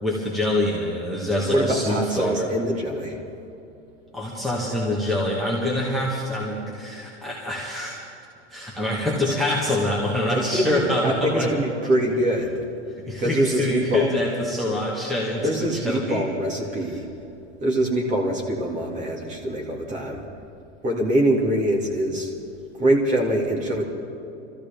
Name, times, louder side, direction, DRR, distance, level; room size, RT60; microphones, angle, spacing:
voice 1, 0.0-2.5 4.1-8.0 8.5-11.5 13.1-16.2, left 1 dB, ahead, -5 dB, 1.3 m, -25 dB
voice 2, 1.5-3.2 9.3-9.4 10.3-12.6 13.2-14.1 15.4-17.1 17.6-20.2 20.8-22.3 22.8-23.8, right 1 dB, 20° right, 0 dB, 2.1 m, -24 dB
26.0 x 14.0 x 3.5 m, 2.9 s
supercardioid pair, 155°, 36 cm